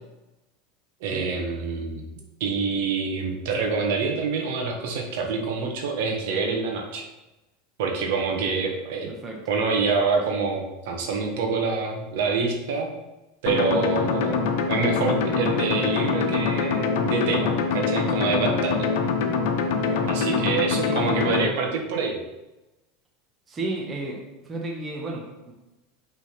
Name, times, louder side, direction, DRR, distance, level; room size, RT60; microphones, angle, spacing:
voice 1, 1.0-2.0 2.4-7.0 7.8-9.1 9.5-12.9 13.4-14.4 14.7-18.9 20.1-22.2, right 4 dB, 75° right, 2 dB, 1.4 m, -26 dB
voice 2, 9.1-9.5 19.8-20.4 20.8-21.1 23.5-25.5, right 2 dB, 25° right, 0 dB, 1.3 m, -34 dB
sound 1, 13.5-21.5, left 5 dB, 70° left, 1.0 m, -24 dB
5.9 x 3.9 x 5.9 m, 1.0 s
supercardioid pair, 120°, 0 cm